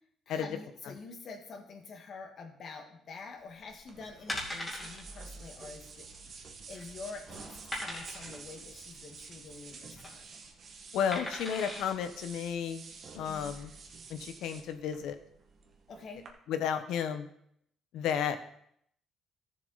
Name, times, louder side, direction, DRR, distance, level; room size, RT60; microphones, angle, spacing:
voice 1, 0.3-6.1 6.7-10.3 13.3-13.6 15.9-16.3, left 4 dB, 50° left, 3 dB, 1.8 m, -47 dB
sound 1, 3.6-3.8 4.3-5.0 5.4-5.5 5.8-5.9 6.5-6.9 7.7-8.4 9.7-10.1 11.1-11.9 12.5-12.6, left 1 dB, 15° left, 2.5 m, -39 dB
sound 2, 3.9-16.3, right 4 dB, 45° right, 1.5 m, -49 dB
voice 2, 10.9-12.9 13.1-13.7 14.1-15.2 16.5-17.3 17.9-18.4, left 8 dB, 85° left, 9 dB, 1.0 m, -32 dB
13.5 x 7.2 x 4.0 m, 0.70 s
cardioid pair, 120°, 0 cm